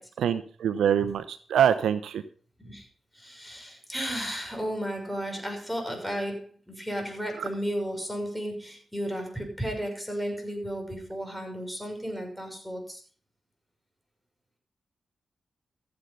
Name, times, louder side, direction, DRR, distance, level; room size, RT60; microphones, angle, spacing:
voice 1, 0.2-2.2, right 9 dB, 85° right, 13 dB, 0.8 m, -24 dB
voice 2, 3.1-13.0, equal, ahead, 2 dB, 6.5 m, -34 dB
15.0 x 8.1 x 5.7 m, 0.42 s
cardioid pair, 55°, 0 cm